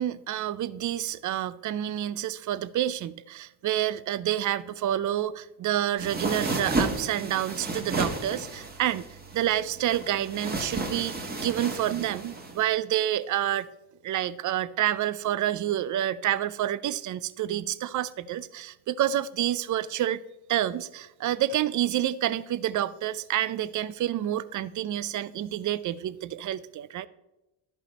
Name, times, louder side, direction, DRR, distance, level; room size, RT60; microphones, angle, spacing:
voice 1, 0.0-9.0 9.3-13.7 14.0-20.2 20.5-27.1, right 12 dB, 45° right, 0.5 m, -28 dB
sound 1, 6.0-12.6, right 2 dB, 20° right, 1.4 m, -32 dB
11.5 x 5.4 x 4.1 m
cardioid pair, 95°, 44 cm